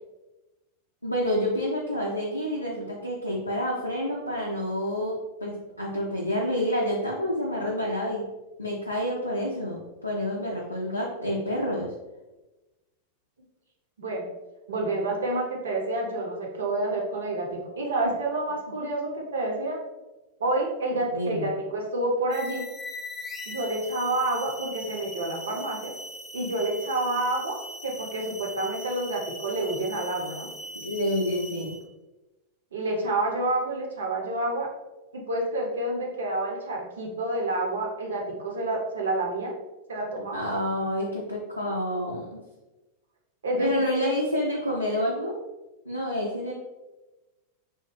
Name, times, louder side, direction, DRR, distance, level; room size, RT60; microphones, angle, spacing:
voice 1, 1.0-8.3 8.6-11.9 21.1-21.5 30.8-31.7 40.3-42.4 43.6-45.4 45.9-46.5, equal, 85° left, -3 dB, 0.4 m, -28 dB
voice 2, 14.7-19.8 20.4-22.7 23.5-25.9 26.3-30.5 32.7-34.7 35.1-39.5 39.9-40.4 43.4-44.1, right 2 dB, 65° right, -1 dB, 0.7 m, -28 dB
sound 1, 22.3-31.9, left 1 dB, 15° left, 0.4 m, -40 dB
3.1 x 2.1 x 3.1 m, 1.1 s
figure-of-eight pair, 90°, 0 cm